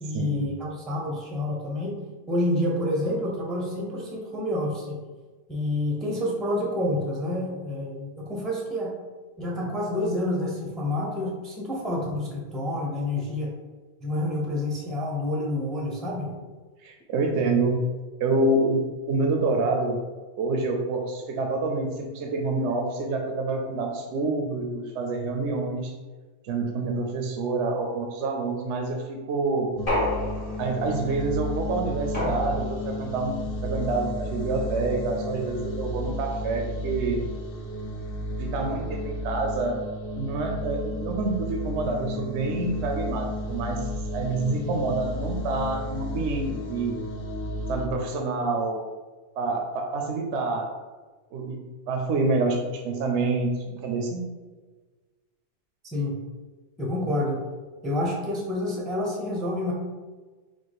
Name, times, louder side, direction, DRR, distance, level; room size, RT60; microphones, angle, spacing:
voice 1, 0.0-2.0 2.3-5.0 5.5-8.9 9.4-13.5 14.0-16.4 55.8-56.2 56.8-57.4 57.8-59.7, left 1 dB, ahead, -2 dB, 0.6 m, -28 dB
voice 2, 16.8-17.8 18.2-20.0 20.4-25.9 26.4-29.7 30.6-33.4 33.6-37.2 38.4-39.8 40.2-47.0 47.7-48.8 49.4-50.7 51.3-54.3, right 3 dB, 75° right, 2 dB, 0.9 m, -27 dB
sound 1, 29.8-47.9, left 1 dB, 60° left, 0.7 m, -33 dB
sound 2, 29.9-30.9 32.1-33.0, left 1 dB, 35° left, 1.4 m, -29 dB
4.9 x 2.2 x 3.9 m, 1.3 s
omnidirectional pair, 1.2 m